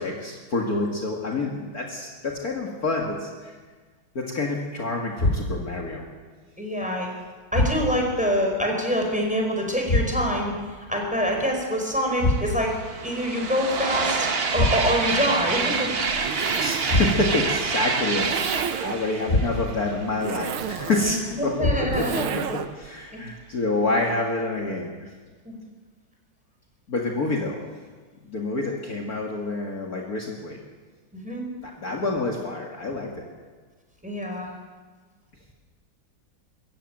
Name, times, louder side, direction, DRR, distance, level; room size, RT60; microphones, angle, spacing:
voice 1, 0.0-3.5 4.1-6.1 16.6-25.1 26.9-27.6 28.3-30.6 31.6-33.1, left 2 dB, 45° left, 0 dB, 2.4 m, -28 dB
sound 1, 5.2-5.8 7.5-8.2 9.9-10.5 12.2-12.8 14.5-15.2 16.9-17.5 19.3-19.9 21.6-22.2, left 2 dB, 30° left, 1.5 m, -25 dB
voice 2, 6.6-7.1 7.5-15.9 21.0-22.4 23.1-23.2 25.4-25.5 31.1-31.4 34.0-34.5, equal, 5° right, 1 dB, 4.7 m, -26 dB
sound 2, 11.7-11.8 12.1-20.7, right 5 dB, 35° right, 1.0 m, -28 dB
Zipper (clothing), 15.0-22.9, right 8 dB, 85° right, 2.0 m, -33 dB
24.0 x 14.5 x 9.0 m, 1.5 s
omnidirectional pair, 2.3 m